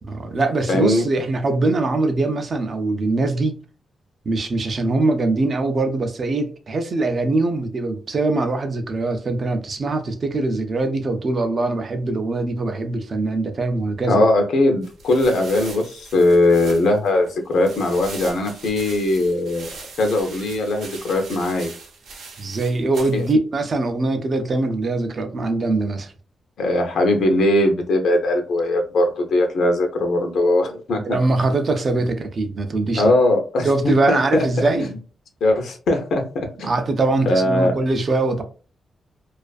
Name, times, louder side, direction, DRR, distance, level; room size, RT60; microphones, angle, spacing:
voice 1, 0.0-3.5 4.3-14.3 22.4-26.1 30.9-33.1 33.6-35.0 36.6-38.4, right 2 dB, 40° right, 0.4 m, -22 dB
voice 2, 0.7-1.0 14.1-19.7 20.0-21.7 23.1-23.2 26.6-31.2 33.0-34.7 35.4-36.7 37.3-37.8, left 1 dB, 75° left, 0.6 m, -20 dB
sound 1, 14.8-23.3, right 4 dB, 80° right, 0.7 m, -40 dB
2.4 x 2.4 x 2.3 m
wide cardioid pair, 150°, 0 cm